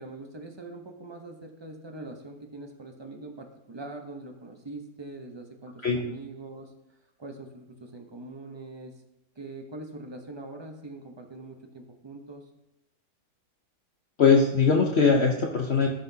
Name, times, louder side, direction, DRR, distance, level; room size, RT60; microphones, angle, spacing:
voice 1, 0.0-6.7 7.2-9.0 9.4-12.4, right 2 dB, 30° right, 3 dB, 0.5 m, -42 dB
voice 2, 14.2-15.9, left 5 dB, 50° left, 0 dB, 0.9 m, -21 dB
14.0 x 5.9 x 2.8 m, 0.88 s
omnidirectional pair, 1.7 m